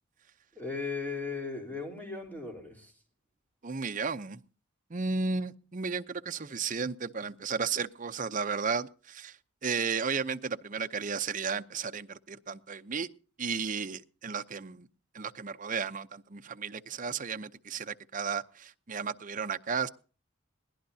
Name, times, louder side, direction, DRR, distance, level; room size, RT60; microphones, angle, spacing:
voice 1, 0.6-2.9, left 4 dB, 10° left, 3.6 m, -37 dB
voice 2, 3.6-4.4 4.9-13.1 13.4-14.9 15.1-19.9, right 5 dB, 40° right, 0.7 m, -34 dB
22.0 x 16.5 x 2.7 m
head